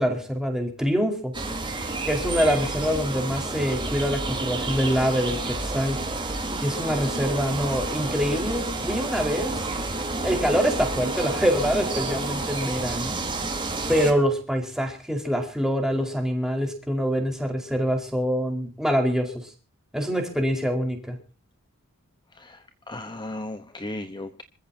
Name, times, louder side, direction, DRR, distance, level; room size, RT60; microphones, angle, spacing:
voice 1, 0.0-1.3 2.0-6.0 6.6-9.7 10.2-13.2 13.9-19.5 19.9-21.2, equal, ahead, 3 dB, 4.7 m, -25 dB
sound 1, 1.3-14.1, right 2 dB, 20° right, 4.0 m, -30 dB
voice 2, 22.4-24.4, left 1 dB, 20° left, 9 dB, 1.1 m, -36 dB
26.5 x 15.0 x 2.8 m, 0.36 s
head